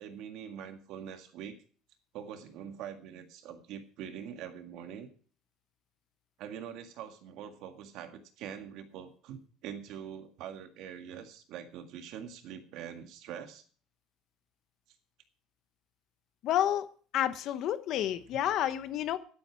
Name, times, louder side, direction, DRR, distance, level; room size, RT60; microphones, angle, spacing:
voice 1, 0.0-1.6 2.1-5.1 6.4-13.6, right 8 dB, 60° right, 7 dB, 1.9 m, -44 dB
voice 2, 16.4-16.9 17.1-19.2, left 11 dB, 50° left, 12 dB, 1.0 m, -29 dB
12.0 x 11.5 x 4.7 m, 0.43 s
cardioid pair, 165°, 0 cm